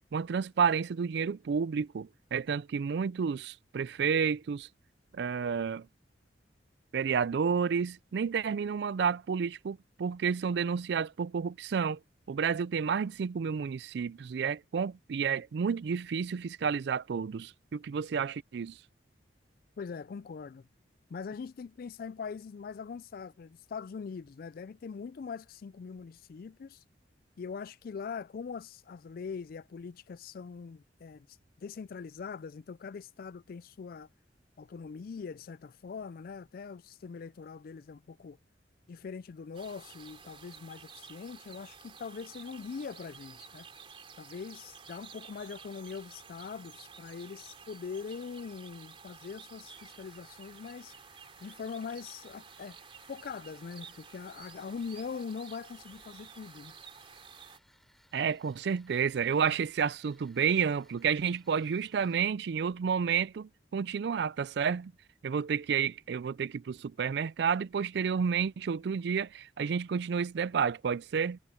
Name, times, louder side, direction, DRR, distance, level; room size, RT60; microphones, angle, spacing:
voice 1, 0.1-4.7 5.1-5.9 6.9-12.0 12.3-18.8 58.1-64.9 65.2-71.4, right 6 dB, 60° right, 0.4 m, -30 dB
voice 2, 19.8-20.7 21.1-26.8 27.4-31.3 31.6-34.1 34.6-38.4 38.9-43.7 44.2-50.9 51.4-52.8 53.1-56.7, left 5 dB, 50° left, 0.3 m, -42 dB
sound 1, 39.5-57.6, right 6 dB, 30° right, 2.8 m, -52 dB
sound 2, 49.7-62.2, equal, ahead, 4.4 m, -66 dB
head